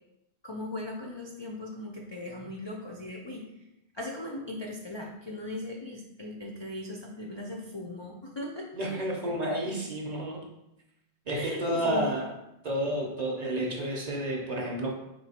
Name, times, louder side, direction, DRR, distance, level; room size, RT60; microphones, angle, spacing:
voice 1, 0.4-3.5 3.9-9.7 11.3-12.2, left 1 dB, 45° left, 0 dB, 0.3 m, -38 dB
voice 2, 8.7-10.5 11.3-12.3 12.6-14.9, right 1 dB, 45° right, 0 dB, 0.7 m, -30 dB
4.2 x 3.0 x 4.1 m, 0.88 s
omnidirectional pair, 1.1 m